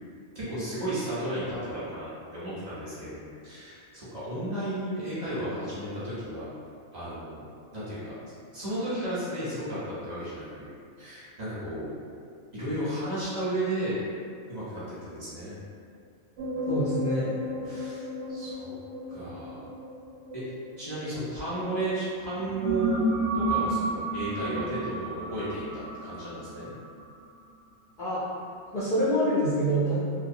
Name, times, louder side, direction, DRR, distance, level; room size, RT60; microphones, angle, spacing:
voice 1, 0.3-2.1 2.3-6.5 6.9-7.5 7.7-8.1 8.5-10.7 11.0-11.9 12.5-14.0 14.5-15.6 17.6-18.7 19.1-19.7 20.3-20.4 20.8-23.0 23.3-26.7, right 1 dB, 35° right, -12 dB, 0.8 m, -33 dB
sound 1, 16.4-21.7 22.2-27.2, right 1 dB, 65° right, 0.8 m, -32 dB
voice 2, 16.7-17.4 28.0-28.2 28.7-30.0, equal, 65° left, -11 dB, 0.4 m, -26 dB
2.3 x 2.2 x 2.6 m, 2.3 s
omnidirectional pair, 1.4 m